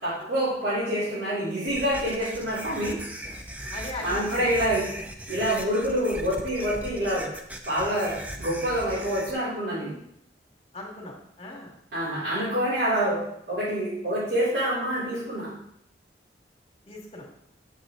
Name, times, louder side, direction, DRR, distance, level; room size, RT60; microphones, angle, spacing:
voice 1, 0.0-3.0 4.0-4.9 5.3-7.3 7.6-9.9 11.9-13.2 13.5-15.5, equal, 75° right, -11 dB, 3.5 m, -26 dB
sound 1, 1.7-9.3, right 1 dB, 10° right, 0.6 m, -38 dB
voice 2, 3.7-4.6 10.7-11.7 16.9-17.2, left 2 dB, 35° left, -1 dB, 1.9 m, -39 dB
9.2 x 6.3 x 3.8 m, 0.73 s
head